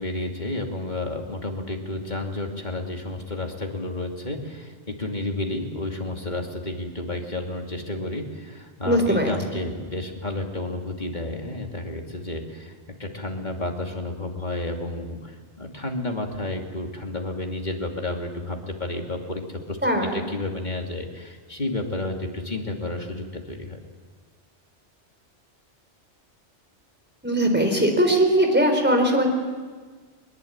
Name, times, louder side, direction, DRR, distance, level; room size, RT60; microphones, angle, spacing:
voice 1, 0.0-23.8, left 2 dB, 40° left, 2 dB, 2.8 m, -31 dB
voice 2, 8.8-9.3 19.8-20.2 27.2-29.3, right 1 dB, 10° right, 4 dB, 4.0 m, -20 dB
23.0 x 21.5 x 8.8 m, 1.5 s
omnidirectional pair, 1.2 m